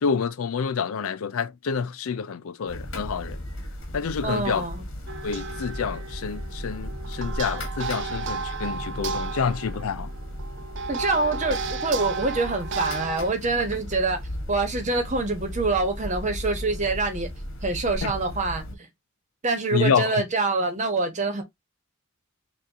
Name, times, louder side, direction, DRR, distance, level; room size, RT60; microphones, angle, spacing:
voice 1, 0.0-3.4 3.9-4.6 5.2-10.1 18.0-18.1 19.7-20.2, left 6 dB, 80° left, 0.5 m, -28 dB
sound 1, 2.7-18.7, equal, 60° left, 1.6 m, -36 dB
voice 2, 4.2-4.8 10.9-14.2 14.5-17.3 17.6-18.8 19.4-21.4, right 3 dB, 35° right, 1.1 m, -25 dB
sound 2, 5.1-13.3, right 5 dB, 60° right, 0.6 m, -34 dB
5.9 x 2.5 x 2.7 m
head